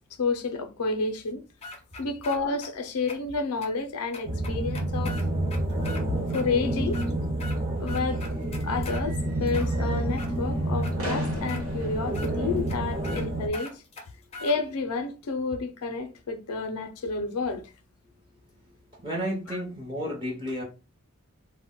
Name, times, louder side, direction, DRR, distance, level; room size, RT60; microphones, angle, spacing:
voice 1, 0.2-1.4 2.0-5.2 6.3-7.0 7.8-8.2 8.6-13.8 14.4-17.7 19.5-19.6, left 4 dB, 85° left, 0.5 m, -30 dB
sound 1, 1.6-2.7 3.1-3.2 3.6-3.7 4.1-6.0 6.3-6.5 6.8-7.6 7.9-9.0 9.5-10.3 10.8-10.9 11.5-11.6 12.1-12.3 12.7-12.8 13.0-13.3 13.5-14.6, left 3 dB, 30° left, 0.4 m, -41 dB
sound 2, 4.2-13.5, right 1 dB, 40° right, 1.0 m, -29 dB
sound 3, 7.8-13.1, right 1 dB, 70° right, 1.1 m, -42 dB
voice 2, 19.0-20.6, equal, 20° right, 0.6 m, -32 dB
2.1 x 2.1 x 3.6 m
head